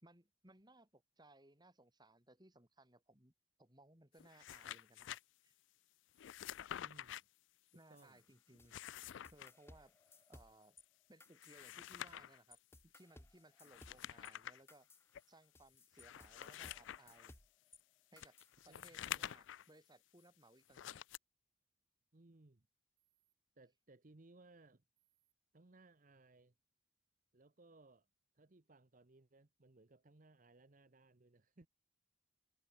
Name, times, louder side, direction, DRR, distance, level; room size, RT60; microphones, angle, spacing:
voice 1, 0.0-3.3 3.6-5.2 5.4-5.6 7.7-8.8 9.3-9.9 10.3-10.8 11.1-14.9 15.3-17.3 18.1-18.4 18.6-21.0, right 1 dB, 20° right, 4.2 m, -64 dB
sound 1, 4.2-5.2 6.2-7.2 8.5-9.5 11.3-12.4 13.6-14.6 15.1-15.2 15.9-17.3 18.2-19.7 20.7-21.2, left 11 dB, 60° left, 0.3 m, -48 dB
voice 2, 6.8-7.3 7.9-8.2 18.7-19.4 22.1-22.7 23.6-24.8 25.5-26.5 27.3-28.1 28.3-31.7, right 2 dB, 40° right, 0.9 m, -64 dB
sound 2, 8.0-10.8 11.2-12.2 12.5-17.8 18.2-19.1, left 2 dB, 10° left, 1.8 m, -63 dB
sound 3, 18.8-19.2 20.8-21.2 23.0-23.4 25.0-25.3, right 16 dB, 65° right, 7.6 m, -86 dB
head